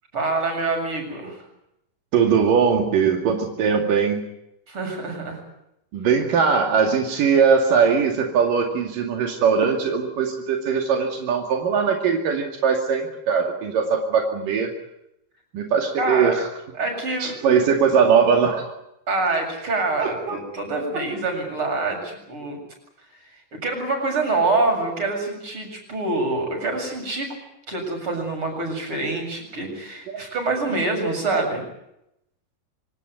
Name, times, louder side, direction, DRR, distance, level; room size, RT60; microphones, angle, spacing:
voice 1, 0.1-1.4 4.7-5.4 16.0-16.4 16.8-17.5 19.1-22.6 23.5-27.3 27.7-31.6, right 3 dB, 40° right, 3 dB, 8.3 m, -26 dB
voice 2, 2.1-4.2 5.9-14.7 15.5-16.5 17.2-18.7 20.0-20.4 30.1-30.2, right 6 dB, 80° right, 3 dB, 4.0 m, -20 dB
25.5 x 18.5 x 9.2 m, 0.82 s
omnidirectional pair, 3.8 m